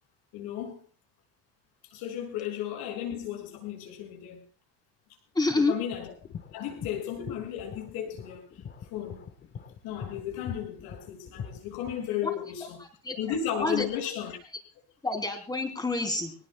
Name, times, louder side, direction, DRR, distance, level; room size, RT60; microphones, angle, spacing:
voice 1, 0.3-0.8 1.9-4.4 5.5-6.1 6.5-8.4 8.9-9.2 9.8-12.8 13.2-14.4, left 9 dB, 80° left, 6.4 m, -34 dB
voice 2, 5.3-5.8 12.2-12.3 12.8-13.2 13.6-13.8 15.0-16.3, left 2 dB, 10° left, 3.3 m, -28 dB
sound 1, 5.9-12.1, left 7 dB, 30° left, 1.4 m, -43 dB
24.0 x 18.5 x 2.3 m
cardioid pair, 170°, 37 cm